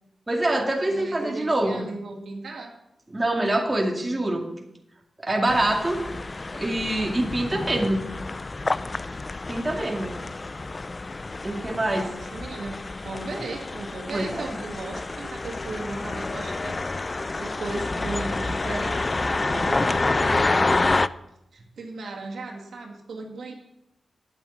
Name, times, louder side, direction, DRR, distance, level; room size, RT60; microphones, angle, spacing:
voice 1, 0.3-1.8 3.1-4.5 5.2-6.0 6.6-8.1 9.5-10.2 11.4-12.1 14.1-14.6, right 1 dB, 20° right, 1 dB, 2.2 m, -25 dB
voice 2, 0.9-2.7 12.0-16.8 17.0-20.9 21.5-23.6, right 3 dB, 85° right, 0 dB, 2.2 m, -36 dB
sound 1, 5.5-21.1, left 3 dB, 35° left, 0.4 m, -28 dB
9.9 x 8.1 x 7.1 m, 0.85 s
cardioid pair, 80°, 0 cm